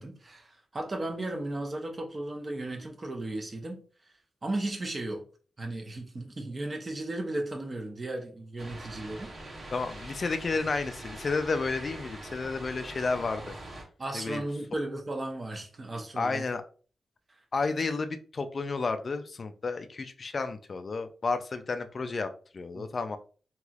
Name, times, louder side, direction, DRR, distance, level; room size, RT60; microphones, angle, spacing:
voice 1, 0.0-3.8 4.4-5.2 5.6-9.6 14.0-16.4 22.8-22.9, right 2 dB, 35° right, 2 dB, 0.7 m, -35 dB
sound 1, 8.6-13.8, right 1 dB, 50° right, 1.1 m, -43 dB
voice 2, 9.7-13.5 14.1-14.4 16.2-16.6 17.5-22.3 22.5-23.2, left 4 dB, 50° left, 9 dB, 0.3 m, -31 dB
3.1 x 2.9 x 2.4 m, 0.39 s
cardioid pair, 85°, 0 cm